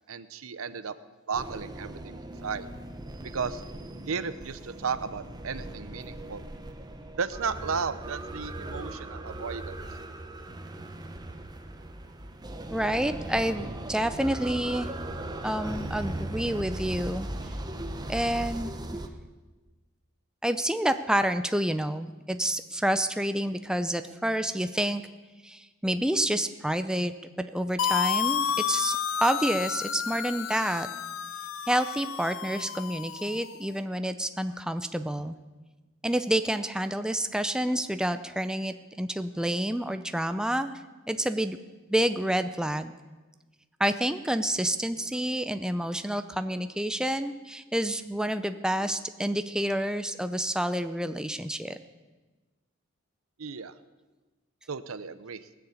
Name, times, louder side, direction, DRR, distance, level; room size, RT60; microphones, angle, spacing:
voice 1, 0.1-0.9 1.3-2.7 3.3-3.6 4.1-6.4 7.2-9.8 53.4-53.7 54.7-55.4, right 5 dB, 85° right, 14 dB, 0.7 m, -34 dB
sound 1, 1.3-19.1, right 1 dB, 20° right, 0.9 m, -38 dB
voice 2, 12.7-14.9 15.4-17.3 18.1-18.7 20.4-25.0 25.4-27.1 27.4-30.9 31.7-35.4 36.0-40.8 41.1-41.6 41.9-42.9 43.8-51.8, right 1 dB, 5° right, 9 dB, 0.5 m, -28 dB
sound 2, 27.8-33.6, left 8 dB, 70° left, 0.5 m, -31 dB
19.0 x 6.9 x 8.4 m, 1.2 s
head